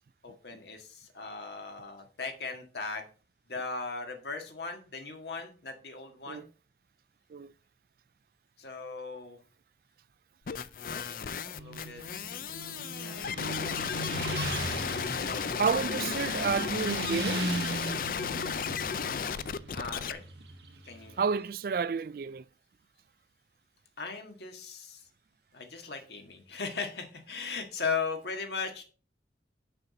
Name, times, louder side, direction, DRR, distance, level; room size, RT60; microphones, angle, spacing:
voice 1, 0.2-3.1 3.5-6.5 8.6-9.4 10.8-12.1 13.0-14.3 15.0-15.6 16.2-16.5 19.7-20.2 20.8-21.2 24.0-25.1 25.5-28.8, left 4 dB, 70° left, 1.7 m, -38 dB
sound 1, 10.5-20.1, left 7 dB, 50° left, 0.4 m, -34 dB
Motorcycle, 11.4-21.2, right 2 dB, 70° right, 1.1 m, -38 dB
voice 2, 15.6-17.5 21.2-22.4, right 5 dB, 50° right, 0.3 m, -30 dB
6.7 x 5.8 x 5.2 m
head